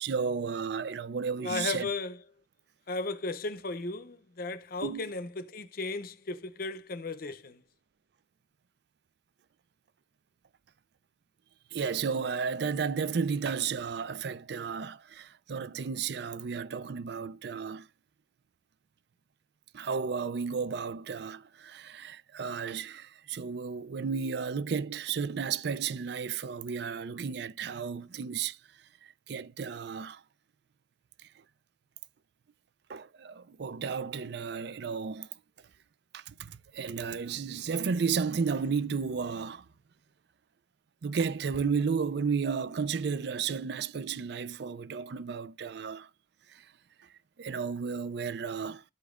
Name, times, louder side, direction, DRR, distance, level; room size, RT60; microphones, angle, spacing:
voice 1, 0.0-1.9 4.8-5.1 11.7-17.9 19.7-28.6 29.3-30.2 32.9-35.3 36.1-39.6 41.0-46.1 46.5-46.6 47.4-48.8, right 5 dB, 60° right, 0.4 m, -33 dB
voice 2, 1.4-2.2 2.9-7.6, left 3 dB, 50° left, 0.6 m, -35 dB
12.5 x 5.2 x 2.5 m
head